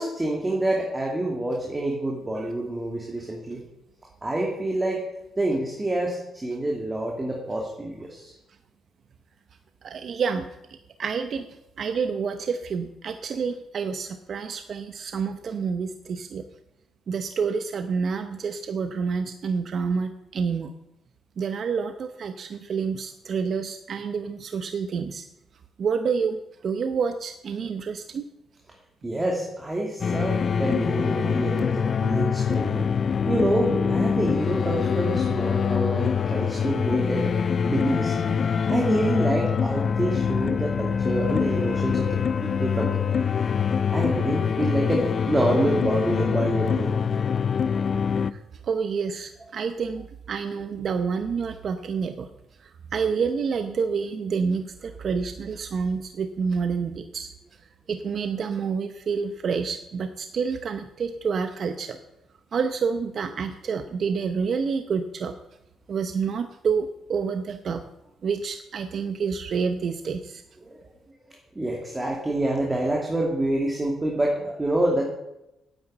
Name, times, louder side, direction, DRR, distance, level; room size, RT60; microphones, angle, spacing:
voice 1, 0.0-3.6 4.2-5.0 5.4-8.3 29.0-32.9 33.3-37.3 37.6-38.4 38.7-43.2 43.9-46.9 70.7-70.8 71.5-75.1, right 1 dB, 20° right, -1 dB, 2.7 m, -27 dB
voice 2, 9.8-10.5 11.0-11.5 11.8-16.4 17.1-20.7 21.4-25.2 25.8-28.2 48.3-52.3 52.6-57.3 57.9-62.0 62.5-65.3 65.9-67.8 68.2-70.4, right 5 dB, 55° right, 8 dB, 0.9 m, -28 dB
sound 1, 30.0-48.3, left 6 dB, 45° left, 0.6 m, -24 dB
9.9 x 8.7 x 8.9 m, 0.89 s
cardioid pair, 90°, 0 cm